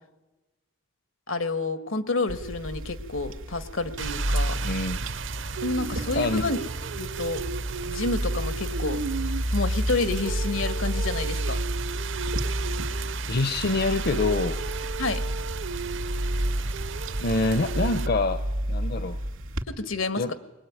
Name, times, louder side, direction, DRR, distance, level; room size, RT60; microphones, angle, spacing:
voice 1, 1.3-4.6 5.6-6.6 7.0-7.4 7.8-9.0 9.5-11.6 15.0-15.2 19.7-20.3, left 3 dB, 80° left, 10 dB, 1.7 m, -29 dB
sound 1, 2.3-19.6, equal, 90° right, 2.5 m, -31 dB
Rain, 4.0-18.1, right 6 dB, 65° right, 0.7 m, -34 dB
voice 2, 4.6-5.0 6.1-6.5 13.3-14.6 17.2-19.2 20.2-20.3, left 3 dB, 50° left, 11 dB, 0.8 m, -26 dB
22.0 x 20.5 x 9.6 m, 1.1 s
head